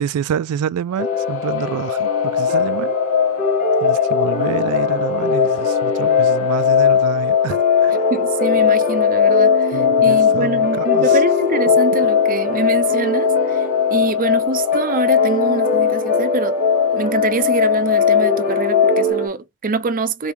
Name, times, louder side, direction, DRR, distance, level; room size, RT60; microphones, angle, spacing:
voice 1, 0.0-3.0 3.8-7.9 9.7-11.2, right 8 dB, 80° right, 0.3 m, -27 dB
sound 1, 0.9-19.1, left 8 dB, 65° left, 0.5 m, -19 dB
sound 2, 1.0-19.3, left 1 dB, 35° left, 0.8 m, -24 dB
voice 2, 8.1-16.6 16.9-20.3, right 3 dB, 40° right, 0.6 m, -24 dB
3.6 x 3.4 x 2.9 m
head